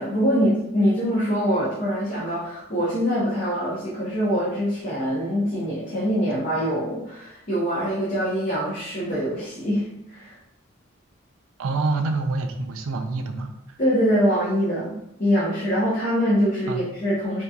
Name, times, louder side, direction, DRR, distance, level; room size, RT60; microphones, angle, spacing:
voice 1, 0.0-10.3 13.8-17.4, equal, 40° left, -8 dB, 0.7 m, -24 dB
voice 2, 11.6-13.5 16.7-16.8, right 3 dB, 90° right, 5 dB, 0.4 m, -26 dB
3.8 x 2.7 x 2.3 m, 0.83 s
head